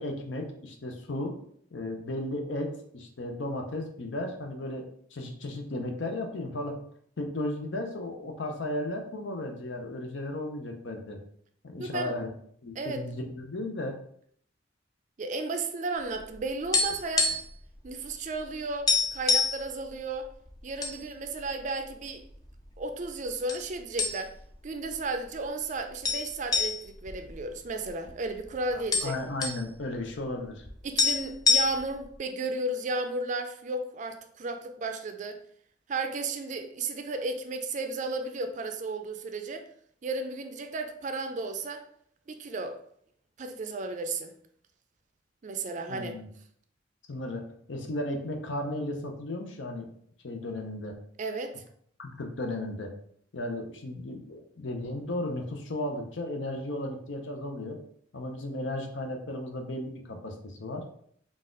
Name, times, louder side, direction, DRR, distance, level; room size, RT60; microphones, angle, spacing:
voice 1, 0.0-1.4 1.7-6.8 7.2-11.2 11.6-12.3 12.6-14.0 28.7-30.6 45.9-46.2 47.1-49.9 50.2-50.9 52.0-52.9 53.3-57.8 58.1-60.8, left 1 dB, 75° left, 0.7 m, -35 dB
voice 2, 11.8-12.2 12.8-13.0 15.2-17.3 17.8-20.3 20.6-22.2 22.8-24.3 24.6-29.1 30.8-35.4 35.9-39.6 40.0-41.8 42.3-42.8 43.4-44.3 45.4-46.2 51.2-51.5, right 3 dB, 40° right, 0.4 m, -34 dB
sound 1, 16.2-17.6 17.9-18.1 18.4-18.5 18.9-19.6 20.3-21.0 21.3-21.5 22.2-22.8 23.5-23.7 24.0-24.5 24.9-25.0 26.0-28.1 28.4-28.5 28.7-29.6 30.7-30.8 31.0-32.0, left 4 dB, 20° left, 0.3 m, -26 dB
4.0 x 2.4 x 3.7 m
head